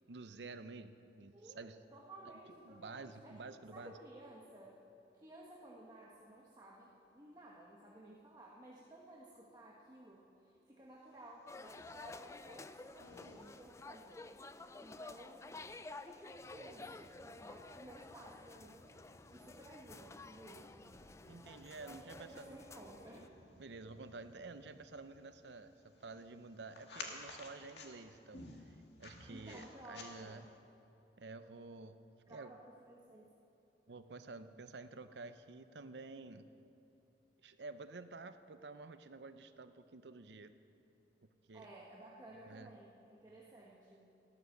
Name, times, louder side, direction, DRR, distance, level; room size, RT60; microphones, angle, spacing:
voice 1, 0.1-1.8 2.6-3.9 21.3-22.6 23.6-30.4 31.2-32.0 32.3-32.5 33.9-36.5 37.4-40.5 41.5-41.7 42.4-42.7, right 3 dB, 75° right, 10 dB, 0.7 m, -50 dB
voice 2, 1.3-3.4 3.7-4.8 5.1-14.3 14.8-15.6 16.0-18.8 19.3-20.8 21.8-23.3 29.3-30.4 32.3-33.3 41.5-44.1, right 1 dB, 20° right, -4 dB, 1.3 m, -56 dB
sound 1, 11.1-30.6, left 3 dB, 75° left, 1.8 m, -57 dB
sound 2, 11.5-23.3, left 3 dB, 15° left, 0.3 m, -52 dB
sound 3, 16.3-26.1, equal, 40° right, 1.6 m, -65 dB
14.0 x 13.0 x 6.6 m, 2.9 s
head